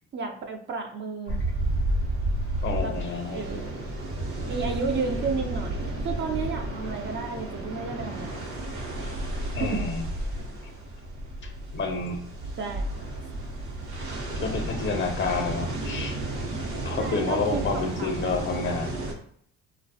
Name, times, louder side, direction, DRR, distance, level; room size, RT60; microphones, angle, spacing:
voice 1, 0.1-1.4 2.8-3.7 4.5-5.8 6.0-8.4 9.6-9.8 12.6-12.8 17.0-18.3, right 4 dB, 40° right, 4 dB, 0.4 m, -32 dB
sound 1, 1.3-19.1, right 1 dB, 70° right, 0.7 m, -32 dB
voice 2, 2.6-3.5 9.5-10.0 11.4-12.2 14.4-16.2 16.8-18.9, left 4 dB, 40° left, 4 dB, 0.6 m, -29 dB
2.2 x 2.1 x 2.6 m, 0.63 s
supercardioid pair, 70°, 31 cm